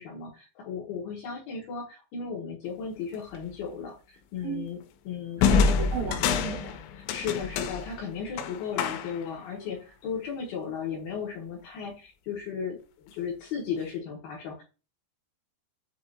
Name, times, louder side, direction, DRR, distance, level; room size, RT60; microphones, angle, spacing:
voice 1, 0.0-4.8 5.1-5.8 7.1-14.6, left 6 dB, 70° left, -3 dB, 2.4 m, -35 dB
sound 1, 3.3-3.6 5.4-9.3, left 5 dB, 90° left, 2.9 m, -27 dB
voice 2, 5.4-6.8, right 6 dB, 80° right, -1 dB, 2.1 m, -35 dB
7.5 x 2.8 x 2.3 m, 0.32 s
omnidirectional pair, 5.1 m